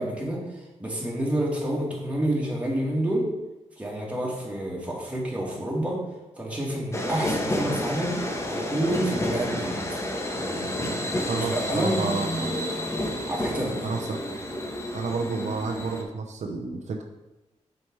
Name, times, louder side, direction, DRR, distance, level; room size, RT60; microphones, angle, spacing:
voice 1, 0.0-3.3 3.8-6.0 6.4-8.2 8.5-9.8 10.3-12.0 13.3-13.8, right 1 dB, 10° right, -4 dB, 2.2 m, -29 dB
sound 1, 6.9-16.0, left 1 dB, 25° left, 1.1 m, -30 dB
voice 2, 11.3-12.5 13.8-14.2 14.9-17.0, right 4 dB, 75° right, 2 dB, 0.8 m, -30 dB
6.4 x 5.1 x 4.6 m, 1.1 s
wide cardioid pair, 110°, 12 cm